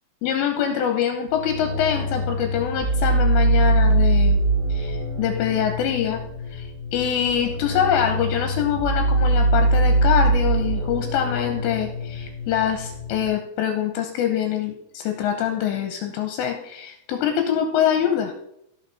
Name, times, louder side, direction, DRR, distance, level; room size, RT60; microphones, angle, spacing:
voice 1, 0.2-4.4 4.7-6.2 6.5-18.3, left 9 dB, 80° left, 4 dB, 2.8 m, -24 dB
sound 1, 1.3-13.2, right 2 dB, 60° right, 0.8 m, -23 dB
16.0 x 5.8 x 4.1 m, 0.77 s
omnidirectional pair, 5.6 m